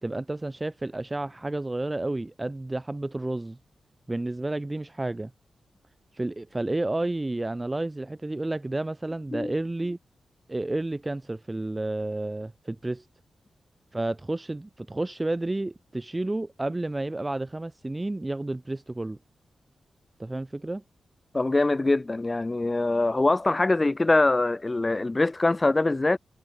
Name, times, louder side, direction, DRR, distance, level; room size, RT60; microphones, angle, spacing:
voice 1, 0.0-3.6 4.1-5.3 6.1-10.0 10.5-13.1 13.9-19.2 20.2-20.8, right 2 dB, 25° right, 5.2 m, -31 dB
voice 2, 21.3-26.2, left 2 dB, 30° left, 0.9 m, -23 dB
supercardioid pair, 40°, 0 cm